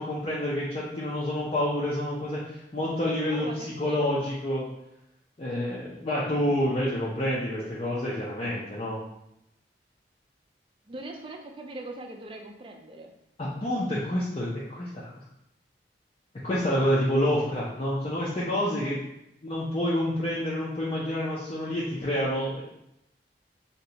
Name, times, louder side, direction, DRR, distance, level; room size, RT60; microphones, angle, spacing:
voice 1, 0.0-4.6 5.4-9.0 13.4-15.0 16.4-19.0 19.4-22.6, left 1 dB, 35° left, -7 dB, 0.4 m, -28 dB
voice 2, 3.3-4.0 10.9-13.1, right 2 dB, 30° right, 2 dB, 0.3 m, -41 dB
2.8 x 2.2 x 3.8 m, 0.81 s
head